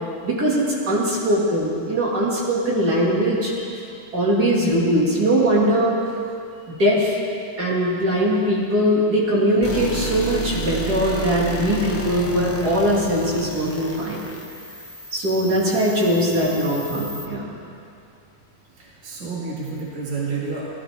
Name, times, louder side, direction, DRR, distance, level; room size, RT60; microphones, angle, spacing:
voice 1, 0.2-3.6 4.1-6.0 6.7-7.2 7.6-14.3 15.1-17.5, equal, 60° right, -5 dB, 2.5 m, -21 dB
sound 1, 9.6-17.3, right 1 dB, 15° left, 0.4 m, -32 dB
voice 2, 18.8-20.6, right 4 dB, 40° right, -5 dB, 2.0 m, -29 dB
16.0 x 12.0 x 3.3 m, 2.5 s
omnidirectional pair, 2.0 m